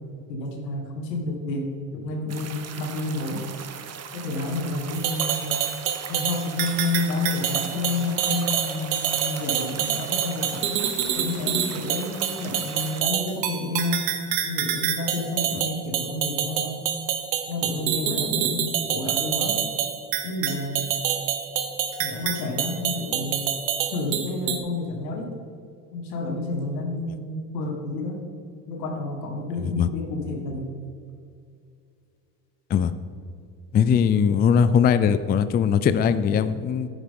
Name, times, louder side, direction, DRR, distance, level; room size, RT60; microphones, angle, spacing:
voice 1, 0.3-3.4 4.1-5.6 6.1-10.9 11.2-14.1 14.4-16.8 17.5-19.6 20.2-21.0 22.0-23.4 23.9-25.3 25.9-28.2 28.7-30.7, left 2 dB, 85° left, 3 dB, 1.8 m, -30 dB
sound 1, 2.3-13.0, right 7 dB, 30° right, 0.9 m, -39 dB
sound 2, 4.9-24.6, right 9 dB, 90° right, 1.0 m, -27 dB
voice 2, 33.7-36.9, left 7 dB, 20° left, 12 dB, 0.4 m, -20 dB
10.0 x 9.9 x 3.7 m, 2.4 s
hypercardioid pair, 75°, 49 cm